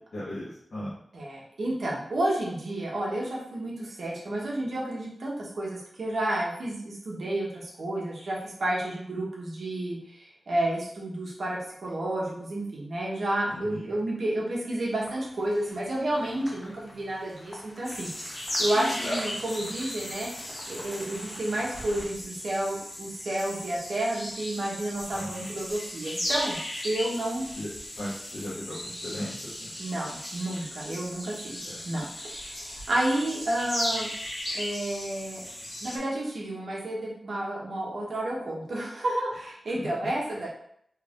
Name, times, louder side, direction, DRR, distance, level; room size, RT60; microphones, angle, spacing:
voice 1, 0.1-0.9 13.5-14.0 25.1-25.6 27.5-27.7 27.9-29.7 31.6-31.9 39.8-39.9, left 1 dB, 60° left, -9 dB, 1.1 m, -37 dB
voice 2, 1.1-18.3 18.6-20.3 20.7-26.6 26.8-27.5 29.8-34.1 34.5-35.4 35.8-40.5, right 1 dB, 75° right, -4 dB, 1.0 m, -31 dB
sound 1, 15.0-22.1, left 1 dB, 30° left, 0.7 m, -47 dB
sound 2, 17.8-36.0, equal, 45° left, 1.4 m, -36 dB
3.2 x 2.4 x 3.6 m, 0.70 s
wide cardioid pair, 80°, 0 cm